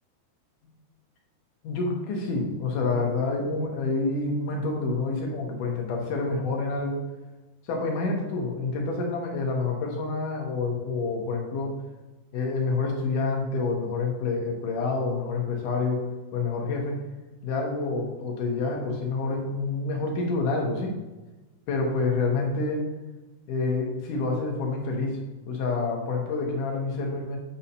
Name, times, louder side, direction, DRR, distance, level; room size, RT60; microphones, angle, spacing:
voice 1, 1.6-7.0 7.6-11.7 12.3-16.0 16.3-17.0 17.4-20.9 21.7-22.8 23.5-25.2 25.5-27.4, left 3 dB, 75° left, 1 dB, 2.9 m, -28 dB
8.9 x 4.3 x 5.4 m, 1.1 s
omnidirectional pair, 3.7 m